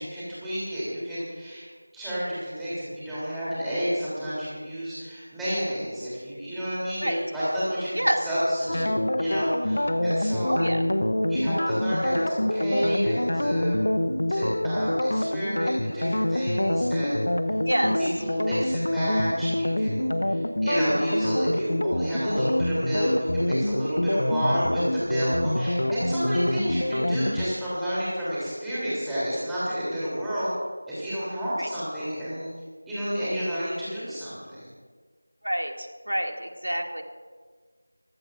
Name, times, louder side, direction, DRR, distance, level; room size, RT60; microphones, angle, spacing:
voice 1, 0.0-1.7 1.9-10.7 11.3-13.8 14.3-17.2 18.0-30.5 30.9-32.5 32.9-34.7, equal, ahead, -13 dB, 3.2 m, -30 dB
sound 1, 8.7-27.4, left 1 dB, 60° left, 0.8 m, -26 dB
voice 2, 10.5-10.8 17.7-18.0 31.6-31.7 35.4-37.0, equal, 80° right, 2 dB, 2.3 m, -27 dB
26.5 x 16.0 x 2.5 m, 1.5 s
figure-of-eight pair, 170°, 0 cm